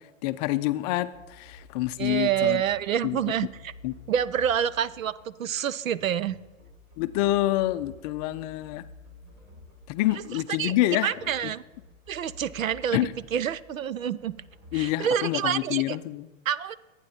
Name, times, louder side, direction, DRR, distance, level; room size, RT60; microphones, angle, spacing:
voice 1, 0.2-2.6 3.0-3.2 3.8-3.9 7.0-8.8 9.9-11.1 11.4-11.5 12.9-13.1 14.7-16.3, left 16 dB, 30° left, 12 dB, 0.5 m, -27 dB
sound 1, 1.1-14.8, left 3 dB, 45° right, 5.2 m, -51 dB
voice 2, 2.0-3.7 4.1-6.4 10.6-11.6 12.1-14.3 14.7-16.0 16.5-16.8, right 9 dB, 80° right, 18 dB, 0.6 m, -27 dB
23.0 x 9.0 x 4.2 m, 1.1 s
hypercardioid pair, 110°, 40 cm